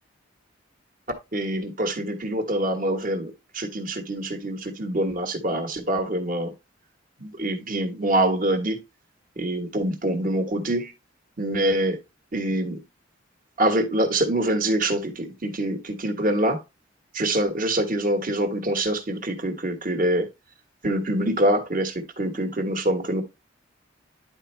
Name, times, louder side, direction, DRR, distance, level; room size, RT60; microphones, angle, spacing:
voice 1, 1.3-6.5 7.2-8.8 9.4-10.9 11.4-12.0 12.3-12.8 13.6-16.6 17.1-20.3 20.8-23.2, right 1 dB, 45° right, 1.3 m, -25 dB
10.0 x 4.4 x 3.2 m
head